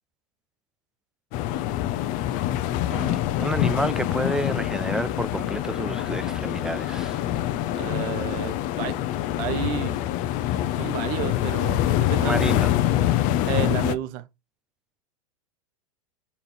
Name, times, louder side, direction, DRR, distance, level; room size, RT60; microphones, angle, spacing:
sound 1, 1.3-14.0, left 13 dB, 45° left, 0.8 m, -25 dB
voice 1, 2.9-7.3 12.2-12.8, right 1 dB, 5° right, 0.4 m, -30 dB
voice 2, 7.7-9.0 9.4-10.0 10.8-12.6 13.4-14.3, right 12 dB, 50° right, 0.9 m, -31 dB
5.2 x 4.2 x 4.4 m
hypercardioid pair, 115°, 18 cm